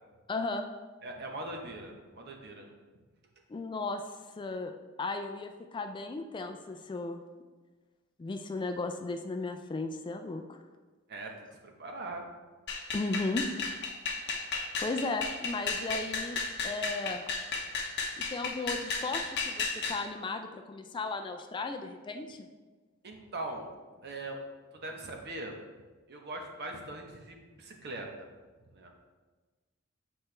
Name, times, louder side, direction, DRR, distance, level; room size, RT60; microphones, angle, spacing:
voice 1, 0.3-0.6 3.5-4.0 4.4-4.7 5.0-7.2 8.2-10.6 12.9-13.7 14.8-16.4 16.6-17.2 18.2-22.5, left 3 dB, 20° left, 6 dB, 0.3 m, -35 dB
voice 2, 1.0-2.7 11.1-12.2 23.0-23.7 24.0-24.4 24.7-25.6 26.1-28.1 28.7-28.9, right 2 dB, 50° right, 2 dB, 0.9 m, -41 dB
sound 1, 12.7-20.0, left 4 dB, 55° left, 0.8 m, -34 dB
7.8 x 4.3 x 3.2 m, 1.3 s
head